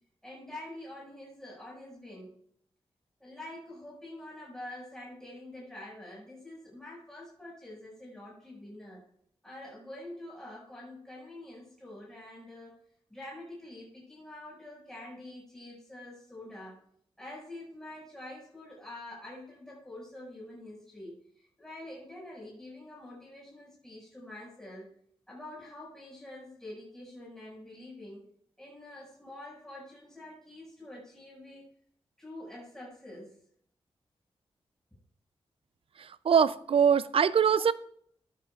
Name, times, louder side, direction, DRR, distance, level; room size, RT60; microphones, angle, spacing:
voice 1, 0.2-2.4 3.2-9.0 9.4-12.8 13.1-16.8 17.2-24.9 25.3-28.2 28.6-31.7 32.2-33.4, left 1 dB, 5° left, 5.6 m, -46 dB
voice 2, 36.0-37.7, right 7 dB, 65° right, 0.4 m, -23 dB
14.5 x 12.5 x 2.4 m
wide cardioid pair, 90°, 10 cm